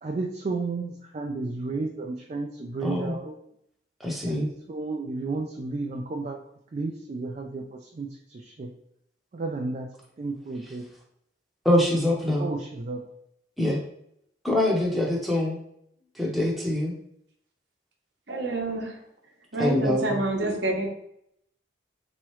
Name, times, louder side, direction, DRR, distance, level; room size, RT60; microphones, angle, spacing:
voice 1, 0.0-3.4 4.3-6.4 6.7-8.7 9.3-9.9 10.2-10.9 12.4-13.1, right 3 dB, 35° right, 2 dB, 0.3 m, -32 dB
voice 2, 2.8-3.2 4.0-4.5 11.6-12.5 13.6-13.8 14.4-15.6 16.2-16.9 19.6-20.2, left 1 dB, ahead, -3 dB, 0.7 m, -24 dB
voice 3, 18.3-19.0 19.5-20.9, right 2 dB, 65° right, 0 dB, 0.9 m, -27 dB
3.5 x 3.0 x 3.1 m, 0.73 s
head